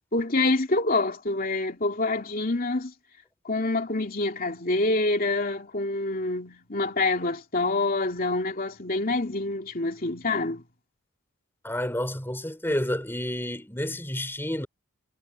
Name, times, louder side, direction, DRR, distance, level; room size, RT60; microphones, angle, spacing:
voice 1, 0.1-2.9 3.4-10.6, left 2 dB, 40° left, 2.8 m, -26 dB
voice 2, 11.6-14.7, left 1 dB, 10° left, 3.2 m, -30 dB
head